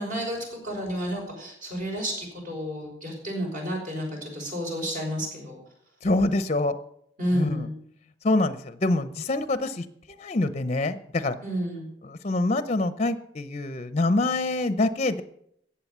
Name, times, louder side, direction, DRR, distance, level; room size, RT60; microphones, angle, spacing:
voice 1, 0.0-5.6 7.2-7.7 11.4-11.9, equal, 50° right, 0 dB, 5.6 m, -31 dB
voice 2, 6.0-6.8 7.3-7.7 8.2-11.4 12.0-15.2, left 2 dB, 35° left, 12 dB, 0.7 m, -25 dB
14.5 x 8.6 x 6.8 m, 0.73 s
head